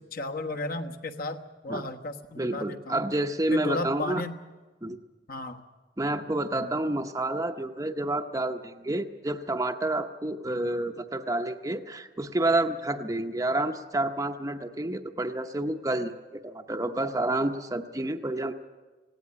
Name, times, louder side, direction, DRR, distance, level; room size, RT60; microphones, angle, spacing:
voice 1, 0.1-3.1 3.5-4.3 5.3-5.6 6.5-6.7 10.5-10.7, left 2 dB, 55° left, 5 dB, 1.3 m, -34 dB
voice 2, 2.4-4.2 4.8-5.0 6.0-18.5, right 2 dB, 20° right, 5 dB, 0.7 m, -29 dB
18.5 x 17.0 x 9.7 m, 1.3 s
head